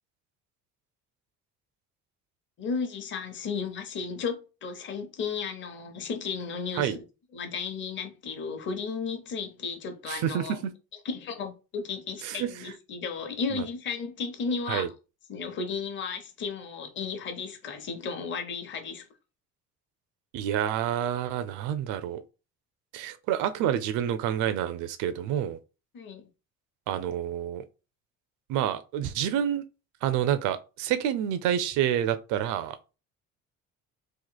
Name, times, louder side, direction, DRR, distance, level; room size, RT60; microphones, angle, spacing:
voice 1, 2.6-7.0 7.3-10.6 11.0-14.9 15.3-19.1 25.9-26.3, left 5 dB, 40° left, 0.8 m, -34 dB
voice 2, 10.1-10.5 12.2-12.5 13.6-13.7 14.7-14.9 20.3-22.2 22.9-25.6 26.9-27.6 28.5-29.6 30.0-32.8, right 10 dB, 85° right, 0.5 m, -28 dB
3.1 x 2.5 x 3.9 m
cardioid pair, 140°, 30 cm